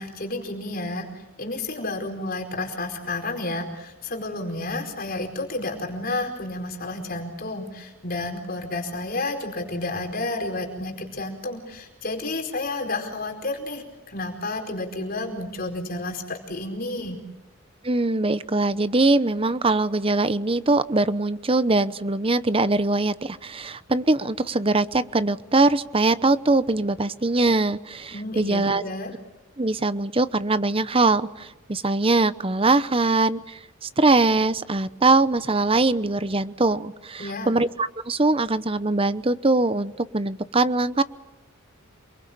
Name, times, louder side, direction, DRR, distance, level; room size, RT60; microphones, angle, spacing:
voice 1, 0.0-17.2 28.1-29.1 37.2-37.6, left 2 dB, 45° left, 3 dB, 4.7 m, -31 dB
voice 2, 17.8-28.8 29.6-41.0, right 2 dB, 25° right, 14 dB, 0.8 m, -22 dB
28.5 x 22.5 x 8.6 m, 1.0 s
head